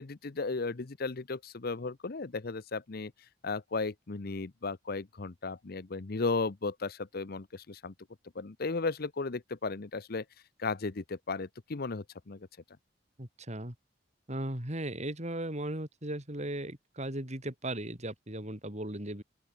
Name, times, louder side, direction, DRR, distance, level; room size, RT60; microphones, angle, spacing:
voice 1, 0.0-3.1 3.4-7.9 8.3-10.2 10.6-12.5, left 3 dB, 55° left, 0.8 m, -35 dB
voice 2, 13.2-13.7 14.3-19.2, right 1 dB, 35° right, 4.2 m, -37 dB
open air
head